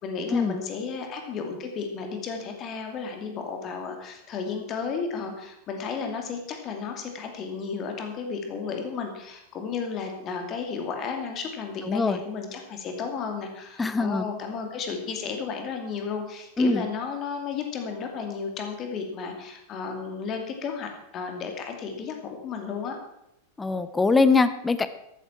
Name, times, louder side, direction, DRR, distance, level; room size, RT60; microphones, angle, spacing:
voice 1, 0.0-23.0, left 5 dB, 30° left, 4 dB, 2.7 m, -33 dB
voice 2, 11.8-12.2 13.8-14.2 16.6-16.9 23.6-24.9, left 3 dB, 10° left, 13 dB, 0.9 m, -22 dB
14.0 x 12.5 x 4.5 m, 0.83 s
figure-of-eight pair, 90°, 0 cm